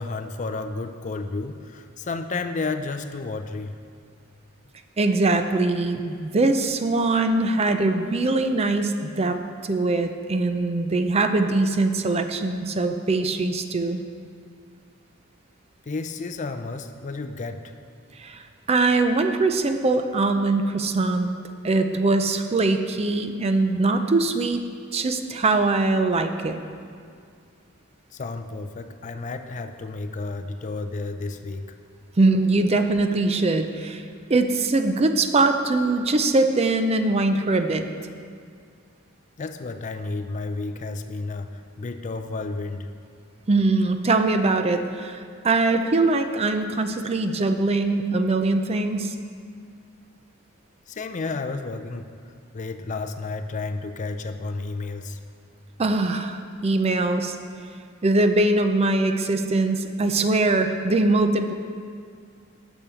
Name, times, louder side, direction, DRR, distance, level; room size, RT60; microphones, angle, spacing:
voice 1, 0.0-3.8 15.9-17.7 28.1-31.7 39.4-42.9 50.9-52.1 52.5-55.2, left 3 dB, 35° left, 8 dB, 0.4 m, -32 dB
voice 2, 5.0-9.4 9.6-14.0 18.2-18.4 18.7-21.3 21.6-24.6 24.9-26.6 32.2-34.0 34.3-37.8 43.5-49.2 55.8-57.4 58.0-61.5, right 2 dB, 30° right, 7 dB, 0.5 m, -22 dB
8.7 x 6.3 x 6.9 m, 2.2 s
head